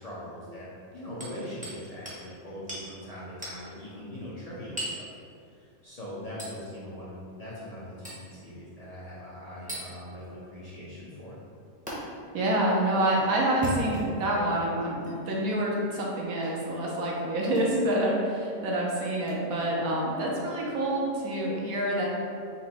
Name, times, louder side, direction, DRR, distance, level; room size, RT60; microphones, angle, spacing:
voice 1, 0.0-5.1 5.5-11.4, equal, 45° left, -9 dB, 0.5 m, -41 dB
Hammer, 1.2-1.8 2.1-2.2 2.7-2.9 3.4-3.6 4.8-5.0 6.4-6.6 8.0-8.3 9.7-9.9 11.9-12.0 13.5-14.3 15.0-15.1 16.4-16.6 17.5-17.7 19.2-19.3, right 1 dB, 5° right, 0.7 m, -37 dB
voice 2, 12.3-22.1, right 1 dB, 75° right, -3 dB, 1.2 m, -27 dB
4.1 x 2.6 x 4.1 m, 2.4 s
omnidirectional pair, 1.5 m